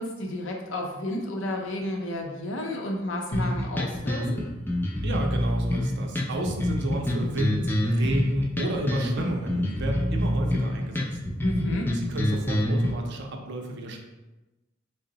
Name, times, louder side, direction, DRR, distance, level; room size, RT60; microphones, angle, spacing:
voice 1, 0.0-4.4 11.4-11.9, left 1 dB, 65° left, 1 dB, 0.6 m, -31 dB
sound 1, 3.3-12.9, left 1 dB, 10° left, 0.3 m, -27 dB
voice 2, 5.0-11.1 11.9-14.0, right 1 dB, 60° right, 2 dB, 0.5 m, -31 dB
3.7 x 2.0 x 3.8 m, 1.1 s
head